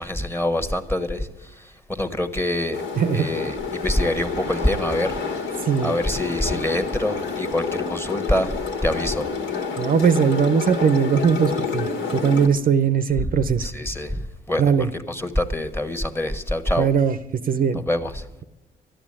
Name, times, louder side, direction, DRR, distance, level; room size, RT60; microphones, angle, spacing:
voice 1, 0.0-2.8 3.1-5.2 5.8-8.5 8.8-9.3 13.2-13.3 13.6-16.9 17.9-18.3, left 1 dB, 10° left, 8 dB, 1.3 m, -25 dB
sound 1, 2.7-12.5, left 5 dB, 70° left, 2.1 m, -29 dB
voice 2, 2.9-3.3 5.6-5.9 9.8-13.7 14.6-14.9 16.8-17.2 17.4-17.8, right 7 dB, 45° right, 12 dB, 0.7 m, -20 dB
13.0 x 10.0 x 8.7 m, 1.0 s
cardioid pair, 90°, 20 cm